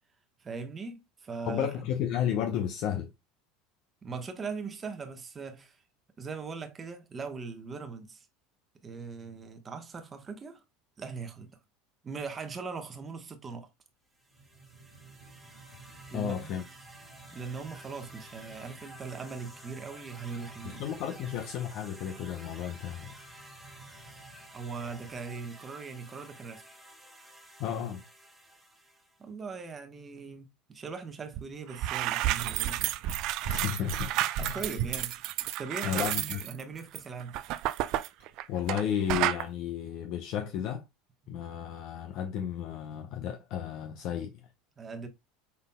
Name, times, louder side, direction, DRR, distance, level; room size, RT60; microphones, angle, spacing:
voice 1, 0.4-1.7 4.0-5.8 6.2-8.3 8.8-10.6 11.0-11.5 12.0-13.7 16.1-16.5 17.3-20.9 24.5-26.6 29.2-32.8 34.3-35.2 35.6-37.4 41.2-41.3 44.8-45.1, right 5 dB, 30° right, 1.1 m, -40 dB
voice 2, 1.5-3.1 16.1-16.6 20.6-23.1 27.6-28.0 33.4-34.6 35.8-36.4 38.5-40.8 41.3-44.3, left 9 dB, 60° left, 0.6 m, -33 dB
sound 1, 14.2-29.2, right 1 dB, 5° right, 1.2 m, -52 dB
sound 2, 14.2-25.6 26.2-26.3, right 4 dB, 85° right, 1.1 m, -55 dB
sound 3, 31.3-31.4 31.7-38.8 39.1-39.4, right 13 dB, 60° right, 0.4 m, -31 dB
5.6 x 4.0 x 2.2 m
hypercardioid pair, 85°, 0 cm